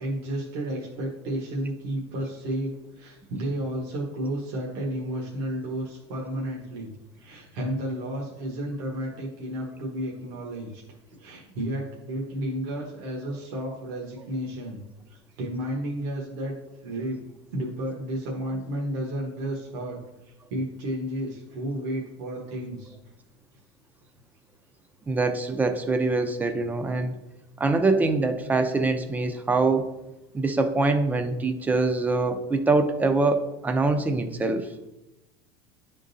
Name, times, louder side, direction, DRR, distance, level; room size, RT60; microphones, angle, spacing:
voice 1, 0.0-6.9 7.1-10.8 11.2-14.8 15.1-16.5 16.8-17.2 17.5-20.0 20.2-22.9, right 1 dB, 70° right, -2 dB, 1.2 m, -32 dB
voice 2, 25.1-27.1 27.6-29.9 30.3-34.7, right 3 dB, 10° right, 7 dB, 0.5 m, -24 dB
10.0 x 3.7 x 2.7 m, 0.95 s
supercardioid pair, 145°, 14 cm